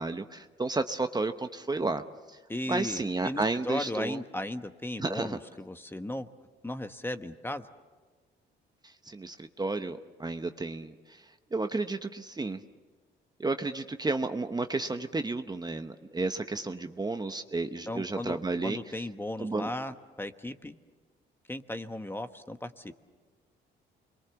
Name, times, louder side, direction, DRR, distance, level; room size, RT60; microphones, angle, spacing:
voice 1, 0.0-2.0 2.3-2.4 2.7-4.2 5.0-5.4 8.8-11.2 11.5-12.6 13.4-18.8 19.4-19.7, right 3 dB, 20° right, 8 dB, 0.9 m, -32 dB
voice 2, 2.5-6.3 6.6-7.7 17.9-20.7 21.5-22.9, left 1 dB, 10° left, 8 dB, 1.2 m, -36 dB
28.5 x 22.5 x 7.1 m, 1.3 s
cardioid pair, 90°, 20 cm